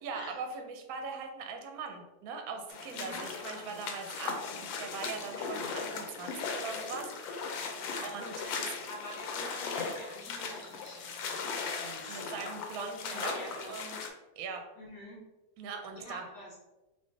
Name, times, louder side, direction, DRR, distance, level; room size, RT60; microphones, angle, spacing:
voice 1, 0.0-7.6 8.0-8.7 12.1-14.1 14.4-14.7 15.6-16.2, right 5 dB, 65° right, 4 dB, 0.9 m, -41 dB
sound 1, 2.7-14.1, left 5 dB, 90° left, 1.4 m, -38 dB
voice 2, 7.7-8.1 8.4-13.7 14.7-15.2 15.9-16.5, equal, 65° left, -7 dB, 1.6 m, -47 dB
5.6 x 2.6 x 2.7 m, 1.1 s
omnidirectional pair, 2.0 m